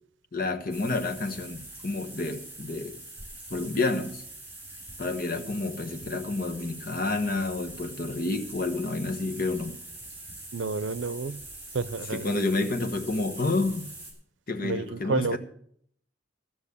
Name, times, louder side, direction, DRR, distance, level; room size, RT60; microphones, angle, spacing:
voice 1, 0.3-3.0 3.5-4.2 5.0-9.8 12.1-13.9 14.5-15.4, left 3 dB, 50° left, 1.3 m, -29 dB
sound 1, 0.7-14.1, right 2 dB, 10° right, 6.3 m, -44 dB
voice 2, 10.5-11.4 11.7-12.3 14.6-15.4, right 4 dB, 85° right, 0.6 m, -30 dB
15.5 x 6.2 x 8.4 m
head